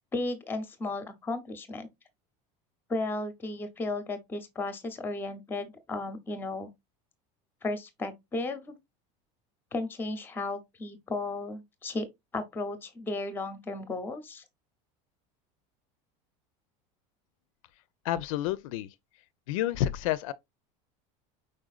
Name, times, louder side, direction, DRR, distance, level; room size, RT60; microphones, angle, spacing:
voice 1, 0.1-1.9 2.9-6.7 7.6-8.7 9.7-12.1 12.3-14.4, left 2 dB, 10° left, 0.6 m, -34 dB
voice 2, 18.0-18.9 19.5-20.3, left 12 dB, 90° left, 0.5 m, -29 dB
5.0 x 4.3 x 2.3 m
cardioid pair, 170°, 17 cm